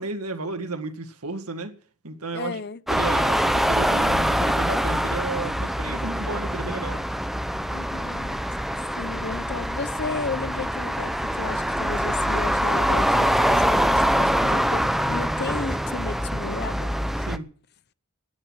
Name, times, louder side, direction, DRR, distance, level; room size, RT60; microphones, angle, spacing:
voice 1, 0.0-1.7 2.0-2.6 2.9-7.0 17.2-17.5, right 3 dB, 80° right, 2.0 m, -33 dB
voice 2, 2.3-2.8 7.7-8.4 9.0-16.9, left 4 dB, 45° left, 0.7 m, -33 dB
sound 1, 2.9-17.4, equal, ahead, 0.7 m, -24 dB
15.0 x 9.6 x 8.0 m
head